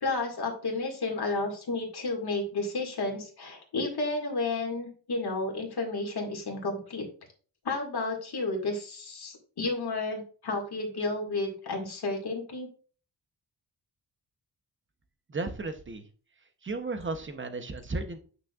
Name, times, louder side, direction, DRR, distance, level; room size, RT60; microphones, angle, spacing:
voice 1, 0.0-7.0 7.6-12.7, left 3 dB, 55° left, 1 dB, 2.0 m, -32 dB
voice 2, 15.3-16.1 16.6-18.2, right 3 dB, 25° right, 8 dB, 0.8 m, -34 dB
8.8 x 6.3 x 2.4 m, 0.40 s
wide cardioid pair, 175°, 46 cm